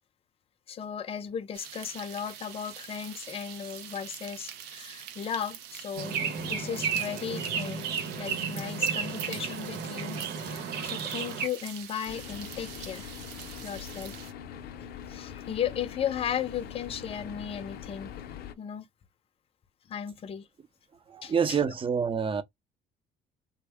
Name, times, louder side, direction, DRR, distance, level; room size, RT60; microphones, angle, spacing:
voice 1, 0.7-7.9 8.2-13.1 13.6-14.2 15.1-18.1 18.6-18.9 19.9-20.5 21.2-21.6, left 8 dB, 35° left, 0.5 m, -36 dB
sound 1, 1.5-14.3, right 9 dB, 90° right, 0.7 m, -45 dB
sound 2, 6.0-11.5, right 6 dB, 75° right, 1.0 m, -33 dB
sound 3, 12.1-18.5, left 8 dB, 70° left, 0.6 m, -42 dB
voice 2, 21.1-22.4, right 6 dB, 30° right, 0.6 m, -27 dB
3.4 x 2.1 x 3.4 m
cardioid pair, 110°, 17 cm